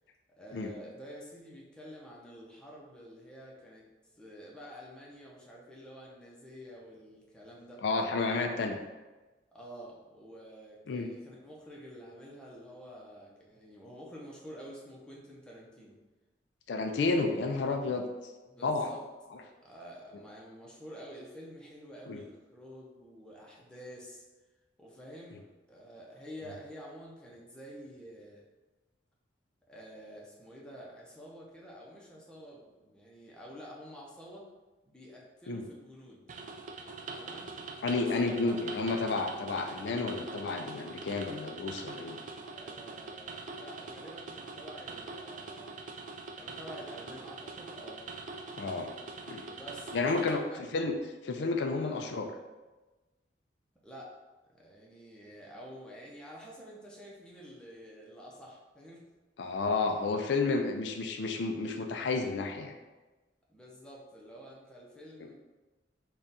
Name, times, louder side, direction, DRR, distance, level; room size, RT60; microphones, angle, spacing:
voice 1, 0.4-3.9 4.2-7.8 9.5-16.0 18.5-19.1 19.6-24.2 24.8-28.4 29.7-34.5 34.8-36.3 37.1-37.6 37.9-38.6 42.5-45.8 46.3-48.0 49.4-50.6 51.8-52.1 53.8-54.1 54.5-59.0 59.9-60.0 63.5-65.3, equal, 5° left, -4 dB, 0.7 m, -49 dB
voice 2, 7.8-8.8 10.9-11.1 16.7-18.0 18.6-18.9 22.1-22.2 35.5-35.6 37.8-42.2 48.6-48.9 49.3-49.4 49.9-50.4 50.7-51.0 51.2-52.3 59.4-62.8, left 3 dB, 75° left, 4 dB, 0.4 m, -31 dB
sound 1, 36.3-50.4, right 3 dB, 45° right, 0.4 m, -43 dB
3.7 x 2.3 x 4.0 m, 1.2 s
head